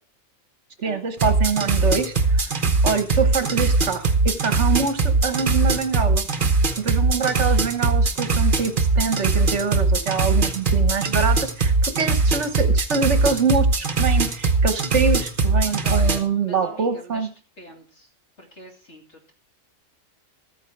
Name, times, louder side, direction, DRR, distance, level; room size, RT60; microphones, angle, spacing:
voice 1, 0.8-2.5 2.8-6.3 6.8-17.3, right 5 dB, 65° right, 9 dB, 1.5 m, -25 dB
sound 1, 1.2-16.2, right 3 dB, 40° right, 1.2 m, -20 dB
voice 2, 15.6-17.3 17.6-18.1 18.4-19.3, equal, 60° left, 2 dB, 2.9 m, -41 dB
13.5 x 9.0 x 4.6 m, 0.39 s
omnidirectional pair, 1.3 m